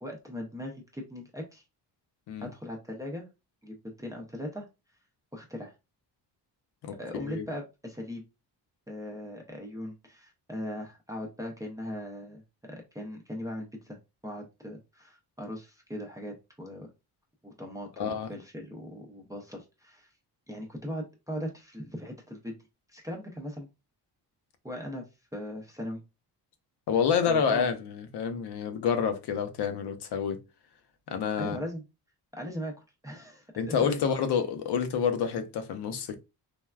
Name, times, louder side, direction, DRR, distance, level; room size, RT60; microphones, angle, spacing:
voice 1, 0.0-1.6 2.4-3.2 3.6-4.7 5.3-5.7 7.0-8.2 8.9-14.0 14.2-16.9 17.4-20.1 20.5-22.6 22.9-23.7 24.6-26.0 27.2-27.7 31.4-31.8 32.3-32.7 33.0-34.0, equal, 10° right, 0.5 m, -39 dB
voice 2, 6.8-7.5 18.0-18.3 26.9-30.4 31.1-31.6 33.6-36.2, left 7 dB, 70° left, 0.6 m, -28 dB
3.4 x 2.2 x 2.2 m
cardioid pair, 120°, 42 cm